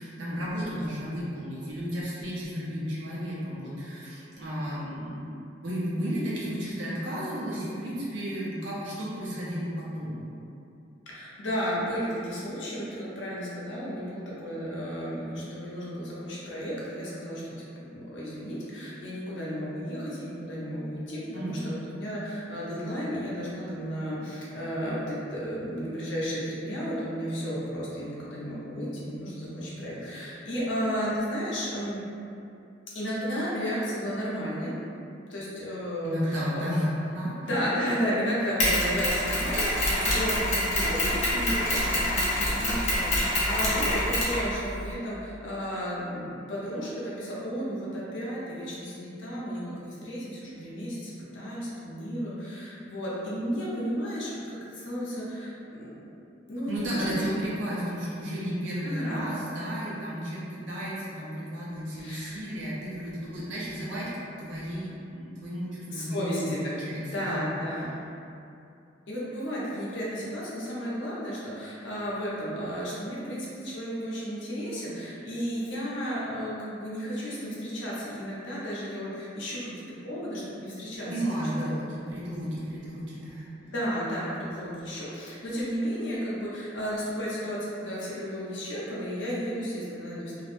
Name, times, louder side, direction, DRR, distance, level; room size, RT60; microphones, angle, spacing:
voice 1, 0.0-5.3 5.6-10.2 21.3-21.7 36.0-37.5 56.7-64.1 64.4-67.5 81.1-83.5, equal, 85° right, -7 dB, 0.7 m, -33 dB
voice 2, 11.1-32.0 32.9-34.7 35.3-36.7 37.4-49.6 50.0-56.1 56.5-57.3 58.4-58.5 58.8-59.3 62.0-62.4 65.9-66.6 66.9-67.9 69.1-79.7 80.0-81.1 83.6-90.4, equal, 80° left, -7 dB, 0.7 m, -33 dB
Mechanisms, 38.6-44.9, left 1 dB, 40° left, 0.6 m, -26 dB
2.5 x 2.0 x 3.0 m, 2.6 s
head